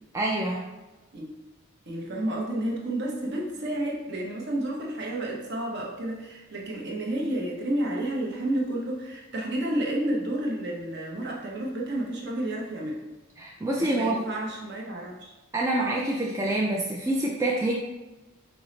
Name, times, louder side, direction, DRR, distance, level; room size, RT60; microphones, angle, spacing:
voice 1, 0.1-0.7 13.4-14.2 15.5-17.7, right 1 dB, 15° right, -4 dB, 0.3 m, -26 dB
voice 2, 1.9-13.0 13.8-15.4, right 1 dB, 50° right, -2 dB, 0.8 m, -31 dB
4.6 x 2.0 x 3.8 m, 1.1 s
head